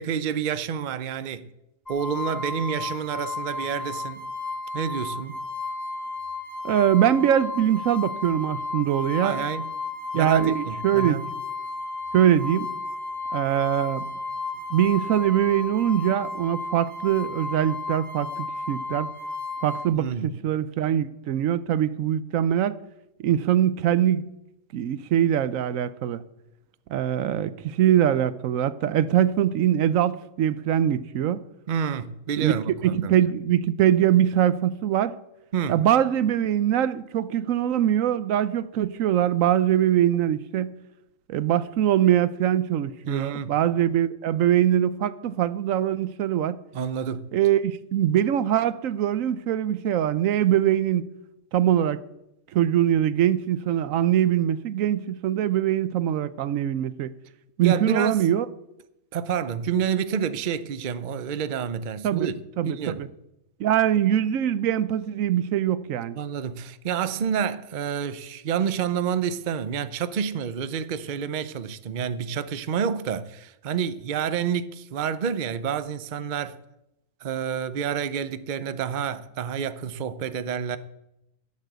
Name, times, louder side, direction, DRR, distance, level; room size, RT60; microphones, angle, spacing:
voice 1, 0.0-1.5 1.9-4.3 4.7-5.4 9.2-9.7 10.1-11.2 19.9-20.3 31.7-33.1 35.5-35.8 43.0-43.6 46.7-47.3 57.6-58.2 59.1-63.0 66.2-76.6 77.2-80.8, right 7 dB, 45° right, 0.7 m, -29 dB
sound 1, 1.9-19.9, left 3 dB, 15° left, 1.9 m, -33 dB
voice 2, 6.6-9.4 10.1-11.2 12.1-12.7 13.3-14.0 14.7-19.1 19.6-22.8 23.2-24.2 24.7-26.2 26.9-31.4 32.4-32.5 32.8-35.1 35.7-40.7 41.3-46.6 47.3-51.1 51.5-52.0 52.5-57.1 57.6-58.5 62.0-62.3 62.6-62.7 63.0-63.1 63.6-66.2, right 10 dB, 80° right, 1.1 m, -22 dB
13.0 x 7.5 x 7.9 m
omnidirectional pair, 1.4 m